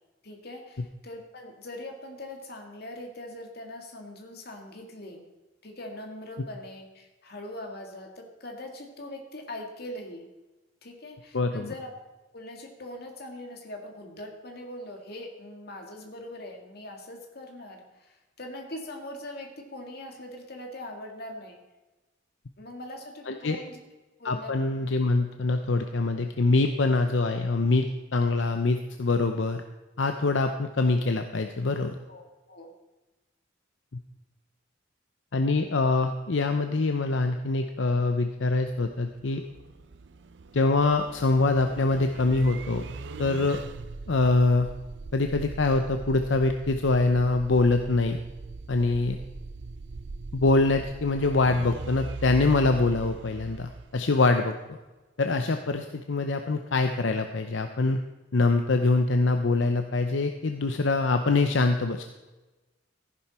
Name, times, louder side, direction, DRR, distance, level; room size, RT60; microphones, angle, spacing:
voice 1, 0.2-5.3 5.6-10.2 10.8-11.9 12.3-21.6 22.6-23.8 24.2-24.5 32.1-32.7 48.8-49.1, left 1 dB, 55° left, 2 dB, 2.2 m, -42 dB
voice 2, 11.3-11.7 23.3-23.6 24.2-27.9 28.1-29.6 30.0-32.0 35.3-39.4 40.5-42.8 43.2-43.6 44.1-44.7 45.1-48.2 48.7-49.2 50.3-54.8 55.2-58.0 58.3-62.0, left 3 dB, 75° left, 6 dB, 0.7 m, -24 dB
sound 1, 38.5-54.5, right 3 dB, 65° right, 0.5 m, -41 dB
14.5 x 10.5 x 4.4 m, 1.1 s
head